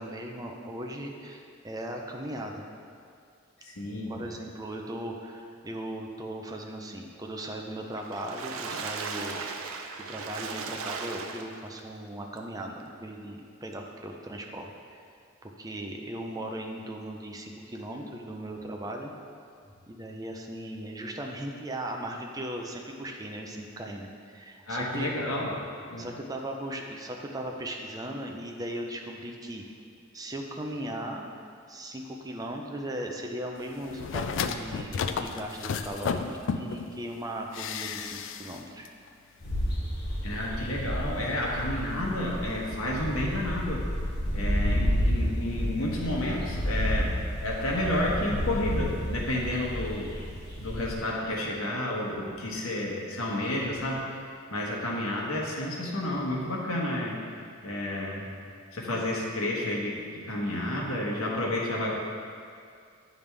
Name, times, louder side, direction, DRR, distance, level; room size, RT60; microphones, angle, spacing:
voice 1, 0.0-2.6 3.9-9.5 10.1-14.7 15.4-19.1 19.9-25.1 26.0-29.6 30.1-31.3 31.7-38.9, right 1 dB, 15° right, 1 dB, 0.5 m, -38 dB
voice 2, 3.6-4.1 24.7-25.5 25.9-26.1 40.2-43.8 44.3-47.2 47.4-50.1 50.6-57.2 57.6-58.3 58.7-62.0, left 1 dB, 90° left, -3 dB, 1.2 m, -31 dB
Water / Splash splatter, 8.0-11.8 12.4-12.5 12.8-12.9, right 5 dB, 80° right, 0.5 m, -37 dB
sound 1, 33.9-36.9 37.5-38.6 38.8-38.9, left 6 dB, 65° left, 0.3 m, -32 dB
sound 2, 39.4-51.0, equal, 45° left, 1.7 m, -31 dB
9.0 x 5.2 x 3.3 m, 2.3 s
head